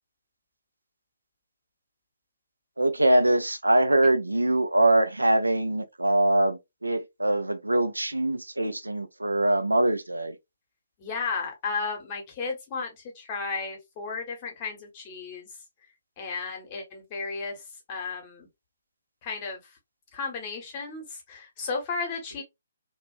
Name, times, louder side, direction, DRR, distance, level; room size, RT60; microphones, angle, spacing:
voice 1, 2.8-10.3, right 1 dB, 80° right, 0.4 m, -23 dB
voice 2, 11.0-15.5 16.2-17.6 17.9-18.5 19.2-19.7 20.1-22.4, left 4 dB, 30° left, 0.9 m, -34 dB
2.4 x 2.2 x 2.4 m
figure-of-eight pair, 135°, 0 cm